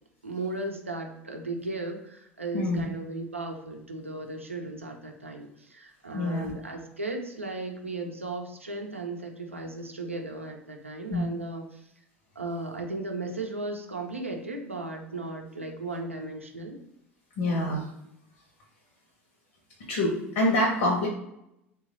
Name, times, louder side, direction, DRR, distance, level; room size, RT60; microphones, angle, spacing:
voice 1, 0.2-11.9 12.4-16.8, right 2 dB, 90° right, 2 dB, 0.5 m, -36 dB
voice 2, 6.1-6.5 11.1-11.2 17.4-17.8 19.9-21.1, left 1 dB, 60° left, -1 dB, 0.8 m, -26 dB
2.9 x 2.3 x 3.9 m, 0.81 s
figure-of-eight pair, 70°, 7 cm